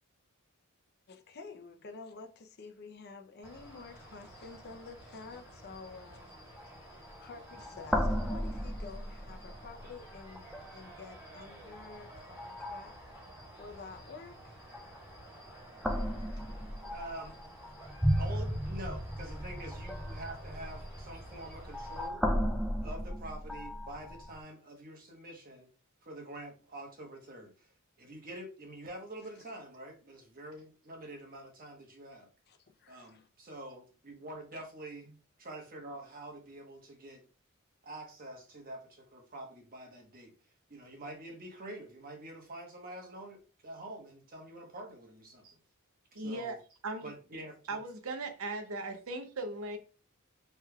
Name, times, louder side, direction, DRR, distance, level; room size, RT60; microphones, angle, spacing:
voice 1, 1.1-6.5 6.9-13.0 13.6-14.6 19.6-19.7 29.2-29.6 32.5-33.3 34.5-34.6, left 4 dB, 50° left, 0.6 m, -50 dB
sound 1, 3.4-22.1, right 1 dB, 15° right, 2.0 m, -52 dB
sound 2, 6.6-6.7 7.1-7.2 7.5-9.8 10.4-10.9 11.7-12.0 12.4-13.2 14.7-15.2 15.8-24.4, equal, ahead, 0.4 m, -35 dB
voice 2, 16.9-17.5 18.1-22.2 22.8-25.7 26.0-27.7 28.0-32.3 32.9-35.1 35.4-37.2 37.8-40.3 40.7-45.4 46.1-46.5 47.0-47.5, right 1 dB, 45° right, 1.1 m, -46 dB
voice 3, 46.1-46.6 46.8-47.1 47.7-49.8, right 2 dB, 70° right, 0.6 m, -38 dB
4.8 x 3.3 x 2.3 m
head